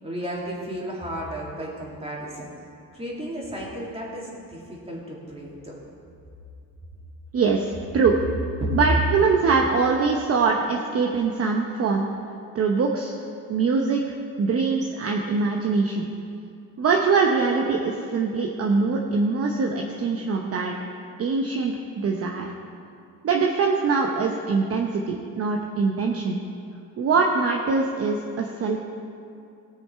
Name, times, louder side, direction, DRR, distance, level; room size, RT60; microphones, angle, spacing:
voice 1, 0.0-2.5 2.9-5.7 8.6-8.8, equal, 15° right, -4 dB, 2.7 m, -33 dB
voice 2, 7.3-8.2 8.7-12.0 12.5-13.1 13.5-16.0 16.8-20.7 21.2-22.5 23.2-26.4 27.0-28.8, right 4 dB, 45° right, 1 dB, 0.9 m, -23 dB
18.0 x 6.3 x 4.6 m, 2.6 s
cardioid pair, 120°, 34 cm